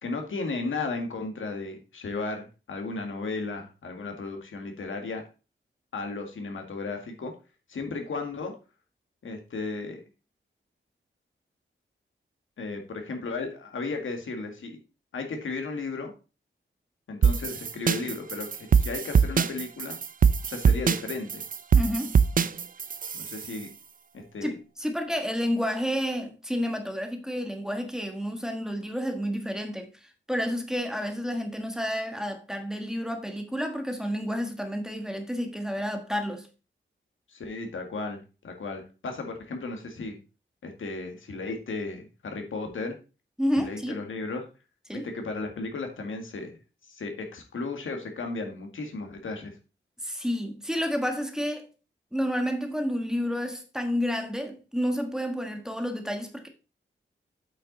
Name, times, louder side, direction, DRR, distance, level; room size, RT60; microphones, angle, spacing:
voice 1, 0.0-5.2 5.9-7.3 7.7-8.5 9.2-10.0 12.6-14.8 15.1-16.1 17.1-20.0 20.5-21.4 23.1-23.7 24.1-24.5 37.3-40.2 40.6-43.0 43.6-44.4 44.9-46.6 46.9-49.5, left 3 dB, 85° left, 1.8 m, -35 dB
sound 1, 17.2-23.6, right 6 dB, 45° right, 0.5 m, -23 dB
voice 2, 21.7-22.1 24.4-36.5 43.4-44.1 44.9-45.1 50.0-51.7 52.1-56.5, equal, 5° right, 1.4 m, -30 dB
8.3 x 5.7 x 4.0 m
wide cardioid pair, 115°, 20 cm